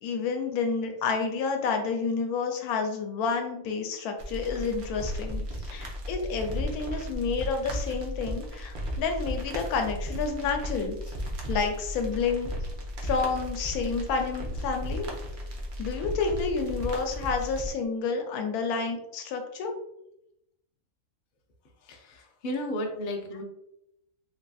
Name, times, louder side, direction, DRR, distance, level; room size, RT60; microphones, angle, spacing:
voice 1, 0.0-11.1 11.5-12.5 13.0-15.1 15.8-19.7, left 5 dB, 90° left, 4 dB, 1.1 m, -30 dB
sound 1, 4.2-17.7, equal, 55° right, 0.6 m, -35 dB
voice 2, 21.9-23.4, left 1 dB, 60° left, 2 dB, 0.5 m, -33 dB
3.2 x 2.5 x 2.3 m, 0.80 s
omnidirectional pair, 1.5 m